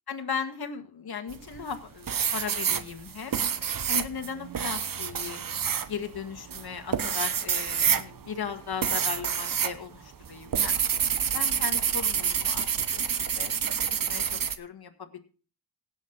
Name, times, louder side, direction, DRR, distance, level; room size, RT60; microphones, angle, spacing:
voice 1, 0.1-3.4 3.9-5.4 5.9-10.8 11.3-13.5 14.1-15.2, left 6 dB, 65° left, 6 dB, 1.8 m, -37 dB
sound 1, 1.3-1.8 2.1-9.8 10.0-14.6, right 7 dB, 55° right, 0.9 m, -28 dB
17.0 x 7.5 x 3.9 m, 0.38 s
wide cardioid pair, 90°, 41 cm